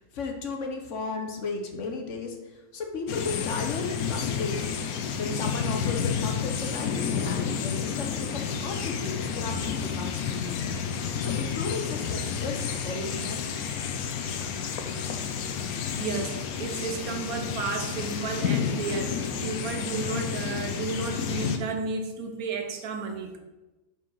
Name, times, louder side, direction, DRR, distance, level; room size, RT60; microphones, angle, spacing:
voice 1, 0.0-4.7 5.2-13.6, left 4 dB, 60° left, 3 dB, 1.2 m, -35 dB
sound 1, 3.1-21.6, left 7 dB, 90° left, 1.2 m, -30 dB
voice 2, 16.0-23.4, right 4 dB, 90° right, 5 dB, 1.4 m, -33 dB
5.1 x 4.6 x 5.6 m, 1.1 s
omnidirectional pair, 1.5 m